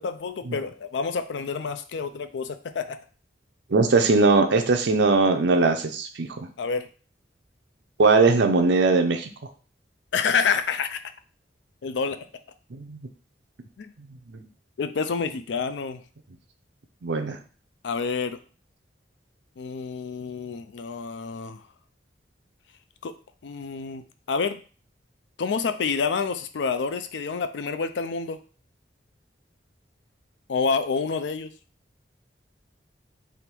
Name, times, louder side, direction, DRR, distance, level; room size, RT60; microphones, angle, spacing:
voice 1, 0.0-3.0 6.6-6.9 10.1-11.1 11.8-12.3 13.8-13.9 14.8-16.0 17.8-18.4 19.6-21.6 23.0-23.1 23.4-24.6 25.4-28.4 30.5-31.5, left 5 dB, 80° left, 10 dB, 0.4 m, -28 dB
voice 2, 3.7-6.3 8.0-9.3 12.7-13.0 14.3-14.4 17.0-17.4, right 3 dB, 75° right, 6 dB, 0.6 m, -20 dB
3.5 x 2.5 x 4.4 m, 0.39 s
head